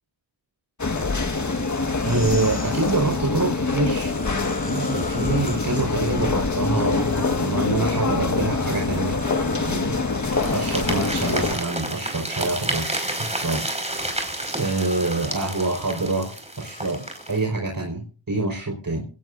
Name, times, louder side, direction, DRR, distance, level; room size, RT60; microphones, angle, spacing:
sound 1, 0.8-11.5, left 3 dB, 40° left, 1.8 m, -25 dB
sound 2, 0.9-3.2 3.8-7.9 8.3-17.5, left 1 dB, 20° left, 4.1 m, -41 dB
voice 1, 2.0-4.1 4.7-9.2 9.5-9.9 10.5-13.6 14.6-16.3 16.6-17.0 17.3-19.0, right 3 dB, 45° right, 1 dB, 4.8 m, -26 dB
sound 3, 10.2-17.4, right 1 dB, 15° right, 5.4 m, -30 dB
26.5 x 18.0 x 2.7 m, 0.39 s
cardioid pair, 70°, 46 cm